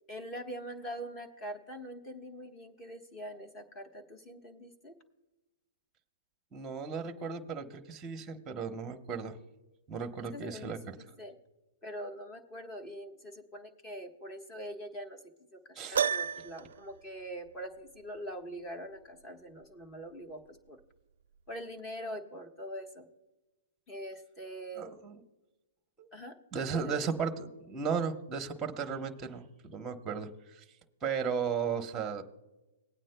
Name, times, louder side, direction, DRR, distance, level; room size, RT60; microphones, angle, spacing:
voice 1, 0.1-4.9 10.2-11.3 11.8-15.2 15.5-20.8 21.5-23.1 23.9-24.8 26.1-26.3 26.7-27.1, equal, 20° left, 5 dB, 1.2 m, -43 dB
voice 2, 6.5-9.4 9.9-11.0 15.7-16.0 24.8-25.2 26.0-26.1 26.5-30.6 31.0-32.2, right 6 dB, 15° right, 6 dB, 0.9 m, -35 dB
Piano, 15.9-16.8, right 7 dB, 80° right, 0.4 m, -30 dB
20.0 x 9.1 x 2.2 m, 1.1 s
hypercardioid pair, 155°, 0 cm